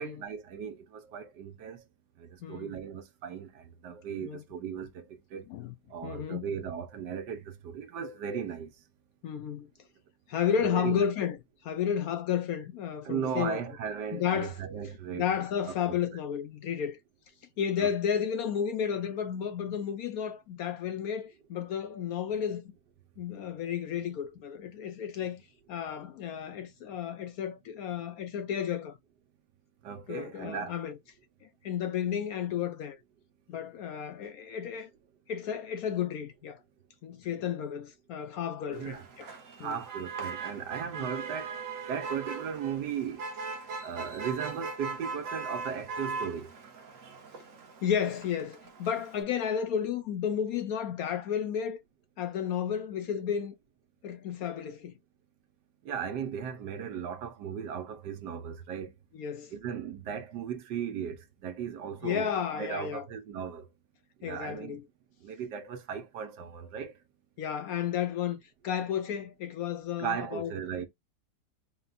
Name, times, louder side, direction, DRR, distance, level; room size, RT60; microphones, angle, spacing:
voice 1, 0.0-1.8 2.2-5.5 5.9-8.8 10.7-11.0 13.0-15.3 15.6-16.0 17.8-17.9 29.8-30.8 38.7-39.0 39.6-43.3 43.8-46.5 55.8-58.9 59.5-63.7 64.2-64.8 65.2-67.0 70.0-70.9, right 7 dB, 80° right, 1.4 m, -37 dB
voice 2, 6.0-6.5 9.2-9.7 10.3-11.4 11.6-13.6 14.1-14.6 15.1-17.0 17.6-22.6 23.2-25.4 25.7-29.0 30.1-31.0 31.6-33.0 33.5-34.9 35.3-36.6 37.0-39.3 39.6-39.7 41.0-41.1 47.8-51.8 52.2-53.5 54.0-54.9 59.1-59.5 62.0-63.0 64.2-64.8 67.4-70.5, left 8 dB, 70° left, 0.9 m, -32 dB
Motor vehicle (road), 38.7-49.2, right 4 dB, 55° right, 1.2 m, -40 dB
4.2 x 2.3 x 3.9 m
omnidirectional pair, 1.9 m